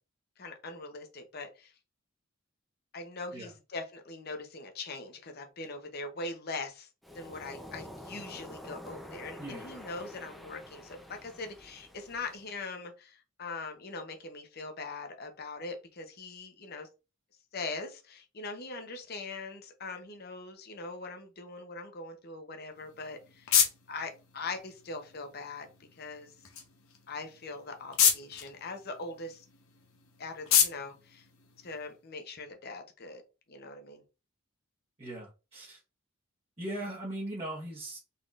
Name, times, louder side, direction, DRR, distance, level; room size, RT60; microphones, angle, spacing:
voice 1, 0.4-1.7 2.9-6.9 7.1-16.9 17.5-23.5 23.9-25.7 25.9-26.3 27.1-29.5 30.2-31.2 31.6-33.2 33.5-34.0, left 3 dB, 45° left, 0.8 m, -41 dB
Waves surf, 7.0-12.5, left 1 dB, ahead, 0.5 m, -47 dB
voice 2, 9.4-9.8 35.0-35.8 36.6-38.0, right 1 dB, 30° right, 1.1 m, -39 dB
sound 1, 22.7-32.1, left 8 dB, 75° left, 0.9 m, -32 dB
4.1 x 3.6 x 2.4 m
head